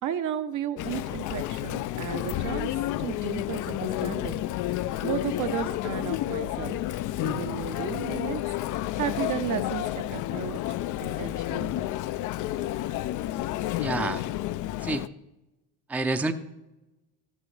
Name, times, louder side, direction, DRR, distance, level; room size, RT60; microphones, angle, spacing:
voice 1, 0.0-2.7 3.0-4.4 5.0-8.4 8.9-11.8, right 9 dB, 50° right, 9 dB, 0.8 m, -34 dB
Chatter, 0.8-15.1, left 14 dB, 55° left, 0.5 m, -31 dB
voice 2, 13.8-14.2 14.8-15.0 15.9-16.3, right 2 dB, 5° right, 8 dB, 0.6 m, -28 dB
13.5 x 13.0 x 3.2 m, 1.0 s
cardioid pair, 110°, 38 cm